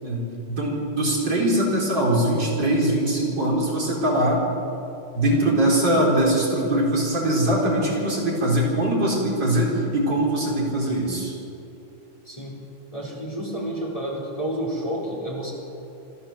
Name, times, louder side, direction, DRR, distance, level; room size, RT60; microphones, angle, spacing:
voice 1, 0.0-4.4 5.1-11.3, right 1 dB, 35° right, -4 dB, 4.5 m, -22 dB
voice 2, 12.3-12.6 12.9-15.5, right 1 dB, 10° left, -2 dB, 4.1 m, -30 dB
27.0 x 13.5 x 7.4 m, 2.8 s
omnidirectional pair, 3.3 m